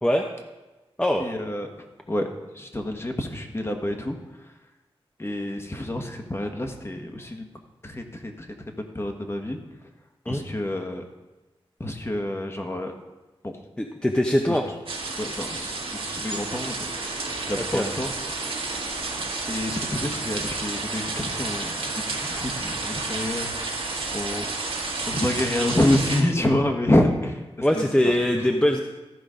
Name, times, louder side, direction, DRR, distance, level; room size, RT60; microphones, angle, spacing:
voice 1, 1.2-1.7 2.1-2.3 2.5-4.2 5.2-7.5 7.8-8.5 8.8-9.6 10.2-11.0 11.8-12.9 13.4-13.5 14.5-14.6 15.2-18.5 19.5-22.0 22.3-23.5 24.1-24.7 25.1-28.1 28.5-28.6, left 1 dB, 25° left, 4 dB, 1.4 m, -28 dB
voice 2, 13.8-14.7 17.7-17.9 27.6-28.8, left 1 dB, 10° left, 2 dB, 0.8 m, -22 dB
sound 1, 14.9-26.2, right 3 dB, 70° right, 1.6 m, -31 dB
14.0 x 5.2 x 5.1 m, 1.1 s
wide cardioid pair, 65°, 10 cm